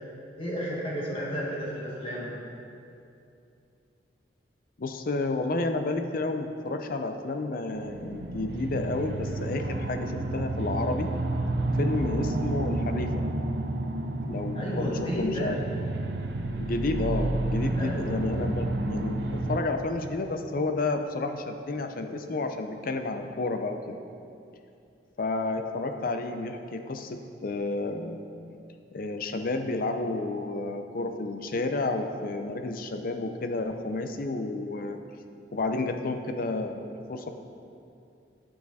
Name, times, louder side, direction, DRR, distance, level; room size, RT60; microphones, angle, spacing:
voice 1, 0.4-2.3 14.6-15.5 17.8-18.1, equal, 30° left, -5 dB, 1.8 m, -32 dB
voice 2, 4.8-11.1 11.8-13.1 14.3-14.9 15.2-15.6 16.6-23.9 25.2-28.2 28.9-35.0 35.5-37.3, left 2 dB, 50° left, 6 dB, 0.6 m, -31 dB
sound 1, 7.7-19.6, right 2 dB, 65° right, 0.5 m, -30 dB
9.5 x 6.5 x 4.1 m, 2.6 s
head